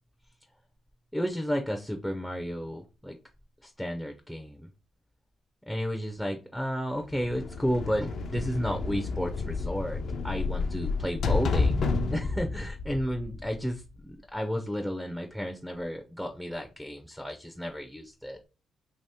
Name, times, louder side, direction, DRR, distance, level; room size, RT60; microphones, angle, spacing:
voice 1, 1.1-3.1 3.6-4.7 5.7-11.9 12.1-18.5, equal, ahead, 0.5 m, -32 dB
sound 1, 7.1-13.9, left 4 dB, 60° left, 0.5 m, -30 dB
2.9 x 2.8 x 3.4 m
cardioid pair, 90°, 0 cm